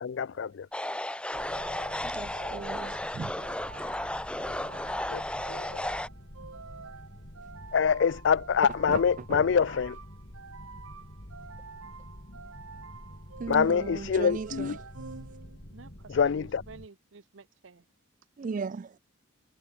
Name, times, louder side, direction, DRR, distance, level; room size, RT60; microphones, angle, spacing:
voice 1, 0.0-0.7 4.5-4.8 5.1-5.2 5.5-5.8 7.7-10.0 13.5-14.7 16.1-16.6, left 6 dB, 60° left, 0.4 m, -26 dB
sound 1, 0.7-6.1, left 1 dB, 5° left, 0.9 m, -34 dB
sound 2, 1.3-16.9, equal, 45° left, 3.9 m, -48 dB
sound 3, 1.3-15.9, right 5 dB, 85° right, 1.2 m, -48 dB
voice 2, 2.0-4.3 8.6-9.0 9.3-9.6 13.4-14.9 18.4-19.0, right 5 dB, 40° right, 0.3 m, -37 dB
voice 3, 15.7-17.8, right 4 dB, 65° right, 0.8 m, -50 dB
head